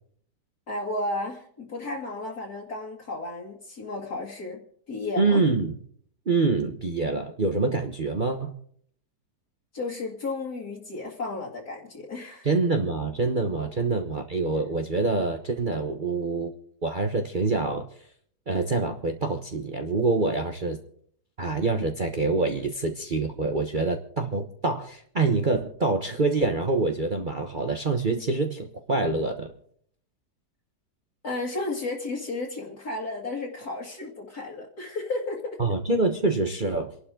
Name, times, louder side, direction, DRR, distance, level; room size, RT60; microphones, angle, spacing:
voice 1, 0.7-4.6 4.9-5.4 9.7-12.5 13.6-13.7 31.2-35.6, left 2 dB, 60° left, -4 dB, 2.7 m, -33 dB
voice 2, 5.2-5.7 6.3-8.5 12.4-16.5 16.8-17.9 18.5-20.8 21.4-29.5 35.6-36.9, right 3 dB, 35° right, 4 dB, 1.1 m, -26 dB
28.5 x 11.5 x 3.8 m, 0.63 s
omnidirectional pair, 1.9 m